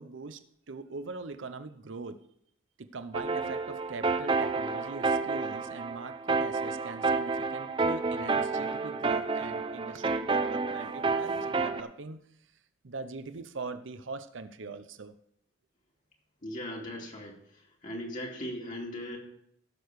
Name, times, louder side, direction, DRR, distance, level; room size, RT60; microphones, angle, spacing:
voice 1, 0.0-2.3 2.8-12.5 12.8-15.2, right 3 dB, 75° right, 11 dB, 0.7 m, -42 dB
sound 1, 3.1-11.8, right 4 dB, 25° right, 0.6 m, -30 dB
voice 2, 16.4-19.2, equal, 40° left, -1 dB, 2.3 m, -39 dB
16.0 x 6.8 x 4.8 m, 0.73 s
head